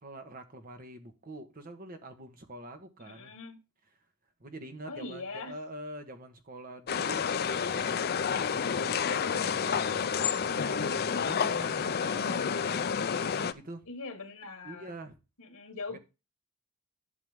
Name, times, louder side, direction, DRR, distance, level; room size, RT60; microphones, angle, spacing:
voice 1, 0.0-3.3 4.4-12.5 13.0-13.9 14.6-15.2 15.9-16.0, right 1 dB, 40° right, 1.4 m, -45 dB
voice 2, 3.0-3.6 4.9-5.5 13.9-14.9 15.4-16.0, left 3 dB, 90° left, 1.7 m, -41 dB
sound 1, 6.9-13.5, left 6 dB, 45° left, 0.5 m, -29 dB
11.0 x 6.1 x 3.6 m
head